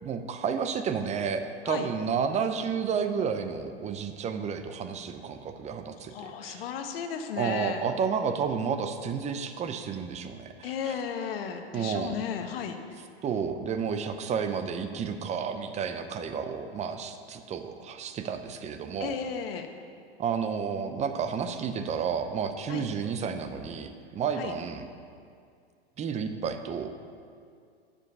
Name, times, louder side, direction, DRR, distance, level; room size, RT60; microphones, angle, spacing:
voice 1, 0.0-6.6 7.4-10.9 11.7-12.2 13.2-19.2 20.2-24.8 26.0-26.9, right 6 dB, 20° right, 8 dB, 0.6 m, -31 dB
voice 2, 6.1-7.8 10.6-12.8 19.0-19.7 22.7-22.9 24.4-24.5, left 7 dB, 65° left, 6 dB, 1.0 m, -34 dB
9.6 x 7.1 x 5.4 m, 2.3 s
hypercardioid pair, 100°, 31 cm